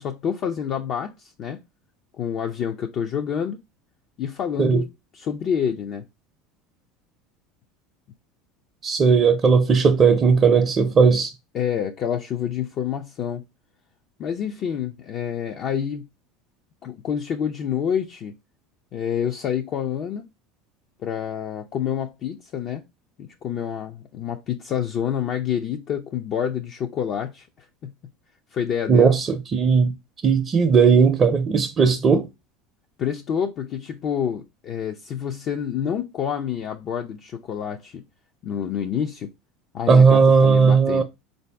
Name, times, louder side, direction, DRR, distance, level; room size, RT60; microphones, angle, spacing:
voice 1, 0.0-1.6 2.2-3.6 4.2-4.9 5.1-6.0 11.5-13.4 14.2-16.0 16.8-18.3 18.9-20.3 21.0-22.8 23.2-27.9 28.5-29.2 33.0-38.0 38.4-39.3 39.7-41.0, left 8 dB, 50° left, 0.5 m, -28 dB
voice 2, 8.8-11.3 28.9-29.9 30.2-32.3 39.9-41.0, right 5 dB, 35° right, 0.5 m, -17 dB
3.9 x 2.6 x 3.3 m
hypercardioid pair, 90°, 0 cm